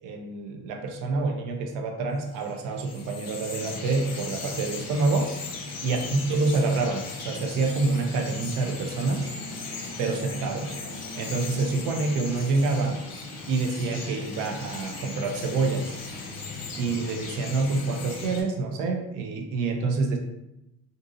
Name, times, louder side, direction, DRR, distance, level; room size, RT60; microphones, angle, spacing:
voice 1, 0.0-5.3 5.8-9.3 10.0-10.8 11.1-13.0 13.5-16.0 16.8-20.2, right 3 dB, 80° right, 3 dB, 0.6 m, -27 dB
Bird vocalization bird call bird song, 2.3-18.4, left 3 dB, 60° left, 0.9 m, -38 dB
3.7 x 2.6 x 2.6 m, 0.90 s
cardioid pair, 180°, 30 cm